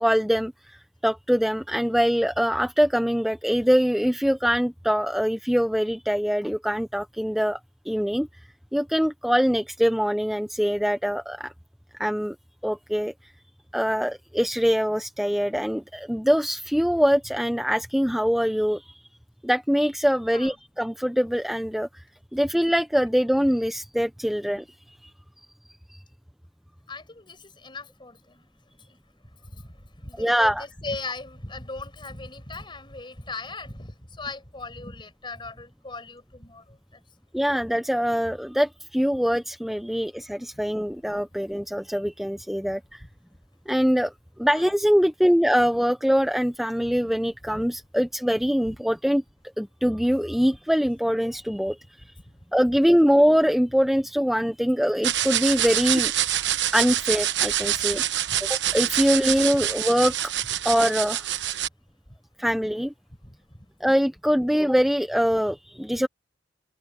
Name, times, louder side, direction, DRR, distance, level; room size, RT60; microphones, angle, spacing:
voice 1, 0.0-7.6 7.9-8.3 8.7-11.5 12.0-12.4 12.6-13.1 13.7-18.8 19.4-22.0 22.3-24.6 25.9-26.0 30.2-30.6 37.3-43.0 43.7-44.1 44.4-49.2 49.6-51.8 52.5-56.1 56.7-58.0 58.4-60.2 60.6-61.3 62.4-62.9 63.8-66.1, equal, ahead, 0.7 m, -23 dB
voice 2, 26.9-28.5 28.9-29.0 29.5-29.7 30.0-37.0 40.5-40.6 44.4-44.6 47.5-47.6 48.7-48.8 58.3-58.4 58.9-59.0 63.2-63.4, left 3 dB, 25° left, 5.9 m, -39 dB
sound 1, 55.0-61.7, right 11 dB, 70° right, 1.1 m, -26 dB
head